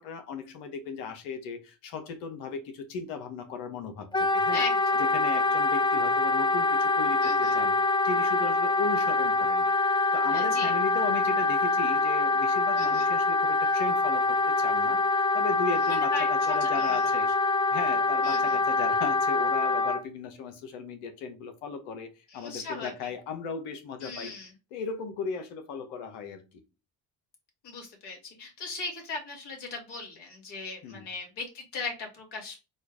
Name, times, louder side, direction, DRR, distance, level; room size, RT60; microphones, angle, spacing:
voice 1, 0.0-4.6 5.0-17.3 17.7-24.3 24.7-26.4 30.8-31.1, left 5 dB, 85° left, 1.0 m, -36 dB
Wind instrument woodwind instrument, 4.1-20.0, left 3 dB, 10° left, 0.5 m, -25 dB
voice 2, 4.5-5.0 7.2-7.6 10.3-10.7 12.8-13.1 15.8-17.1 18.2-18.6 22.3-23.1 24.0-24.5 27.6-32.6, left 4 dB, 65° left, 2.3 m, -38 dB
4.3 x 2.4 x 4.7 m
hypercardioid pair, 55°, 44 cm